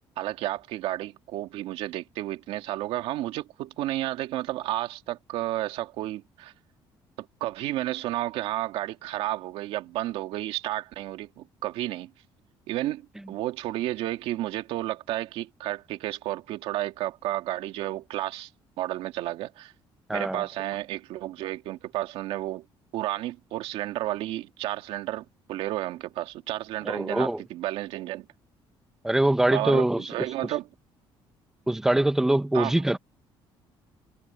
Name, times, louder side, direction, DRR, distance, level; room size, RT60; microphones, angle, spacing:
voice 1, 0.2-6.5 7.4-12.1 12.7-13.0 13.3-18.5 18.8-19.7 20.1-22.6 22.9-28.3 29.5-30.7 32.5-32.7, right 15 dB, 80° right, 2.3 m, -32 dB
voice 2, 20.1-20.4 26.8-27.4 29.0-30.1 31.7-33.0, right 1 dB, 5° right, 0.9 m, -23 dB
cardioid pair, 160°, 10 cm